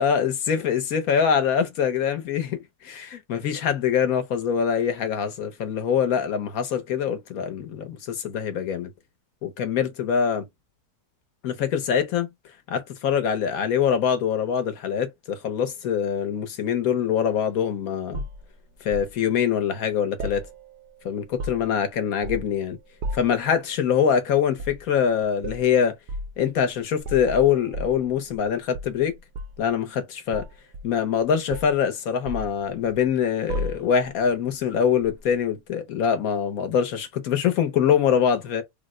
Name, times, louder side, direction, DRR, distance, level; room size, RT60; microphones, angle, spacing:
voice 1, 0.0-8.9 9.4-10.4 11.4-12.3 12.7-18.2 18.8-20.4 21.0-22.8 23.1-25.9 26.4-29.1 29.6-30.4 30.8-38.6, left 7 dB, 70° left, 1.2 m, -24 dB
sound 1, 18.1-19.1 20.2-20.9 21.2-21.8 22.2-22.6 23.0-23.4 24.5-24.8 25.4-25.7 26.1-26.3 27.0-28.5 28.7-29.7 30.3-31.2 31.5-31.8 32.3-33.1 33.5-34.1 35.0-35.2, equal, 65° right, 0.7 m, -34 dB
3.4 x 2.1 x 3.6 m
omnidirectional pair, 1.6 m